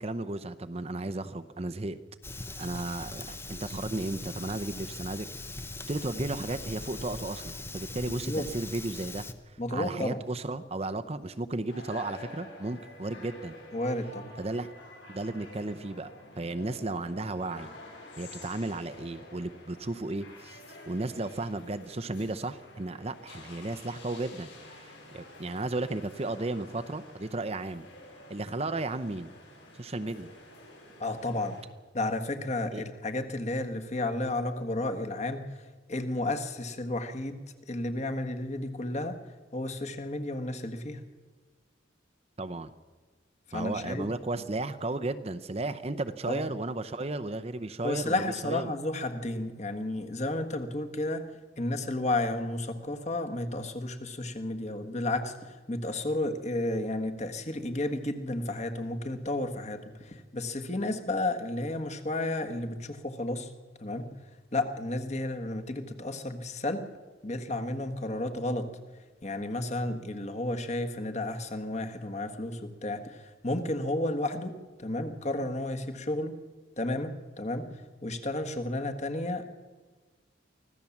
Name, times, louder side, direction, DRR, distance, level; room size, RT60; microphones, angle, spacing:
voice 1, 0.0-2.0 2.6-5.3 5.6-13.6 14.4-14.7 15.1-17.7 18.2-20.6 20.9-27.9 28.3-29.3 29.8-30.3 32.7-32.8 42.4-42.7 43.5-48.1 48.4-48.7, right 2 dB, 30° right, 10 dB, 0.7 m, -34 dB
Fire, 2.2-9.3, left 2 dB, 10° left, 0.9 m, -40 dB
voice 2, 9.6-10.2 13.7-14.3 31.0-31.6 31.9-35.5 35.9-39.2 39.5-41.0 43.5-44.1 46.3-46.4 47.8-51.2 51.6-63.5 63.8-64.1 64.5-66.9 67.2-68.7 69.2-76.3 76.8-79.4, left 2 dB, 35° left, 6 dB, 1.6 m, -32 dB
sound 1, 11.7-31.6, left 1 dB, 70° left, 6.8 m, -49 dB
24.5 x 16.0 x 7.3 m, 1.3 s
head